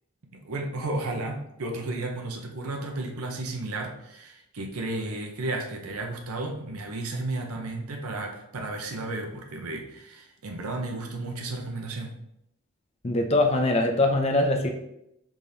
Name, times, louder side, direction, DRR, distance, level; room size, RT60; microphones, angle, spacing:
voice 1, 0.3-12.1, right 2 dB, 80° right, 2 dB, 0.7 m, -33 dB
voice 2, 13.0-14.7, left 2 dB, 30° left, 2 dB, 0.5 m, -22 dB
5.0 x 3.6 x 2.7 m, 0.79 s
head